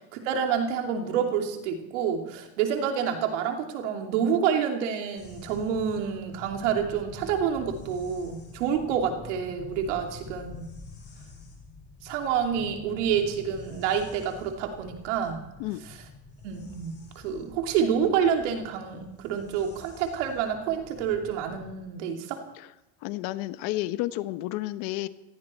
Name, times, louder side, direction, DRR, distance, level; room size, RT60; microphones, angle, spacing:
voice 1, 0.3-10.7 12.0-15.4 15.9-16.0 16.4-22.4, right 7 dB, 85° right, 3 dB, 2.9 m, -28 dB
sound 1, 5.2-21.7, left 4 dB, 30° left, 6.0 m, -47 dB
voice 2, 23.0-25.1, left 17 dB, 70° left, 14 dB, 1.0 m, -31 dB
17.5 x 15.5 x 4.4 m, 0.90 s
supercardioid pair, 110°, 36 cm